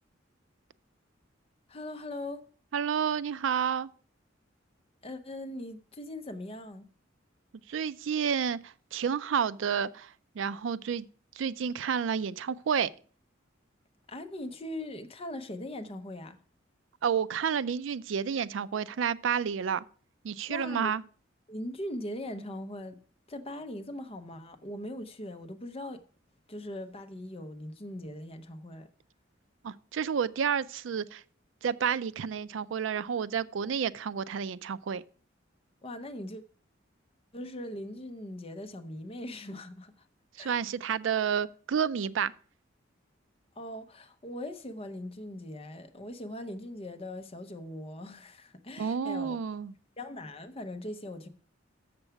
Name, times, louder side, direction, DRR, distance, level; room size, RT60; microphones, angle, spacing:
voice 1, 1.7-2.5 5.0-6.9 14.1-16.4 20.5-20.9 21.5-23.0 23.3-26.0 26.5-28.9 35.8-36.4 37.3-40.1 40.4-40.6 43.6-49.4 50.0-51.3, left 1 dB, 30° left, 0.7 m, -40 dB
voice 2, 2.7-3.9 7.7-11.1 11.3-12.9 17.0-19.8 20.2-21.0 29.6-31.2 31.6-35.0 40.4-42.3 48.8-49.7, right 7 dB, 75° right, 0.4 m, -30 dB
7.1 x 6.8 x 5.7 m
head